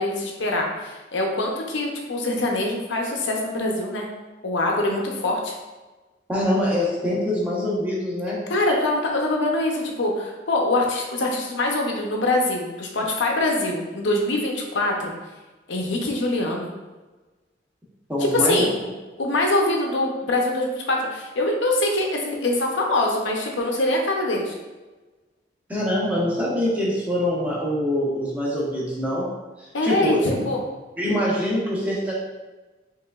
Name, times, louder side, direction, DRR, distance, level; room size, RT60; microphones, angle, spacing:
voice 1, 0.0-4.1 4.4-5.5 8.5-15.1 15.7-16.7 18.3-18.7 19.2-24.5 29.7-30.6, left 2 dB, 85° left, 0 dB, 0.7 m, -24 dB
voice 2, 6.3-8.4 18.1-18.6 25.7-29.2 29.6-30.5 31.0-32.1, left 1 dB, 10° right, -6 dB, 0.8 m, -24 dB
4.8 x 3.2 x 2.4 m, 1.2 s
head